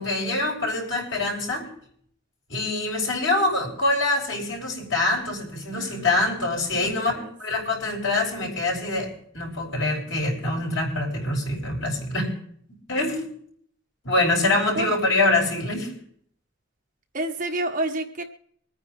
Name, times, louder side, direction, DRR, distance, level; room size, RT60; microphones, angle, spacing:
voice 1, 0.0-1.7 2.5-7.1 7.4-12.4 12.9-13.3 14.0-15.9, left 2 dB, 75° left, -1 dB, 5.9 m, -25 dB
voice 2, 6.7-7.3 14.7-14.9 17.1-18.2, right 2 dB, 40° right, 4 dB, 1.5 m, -29 dB
25.0 x 9.7 x 3.3 m, 0.62 s
head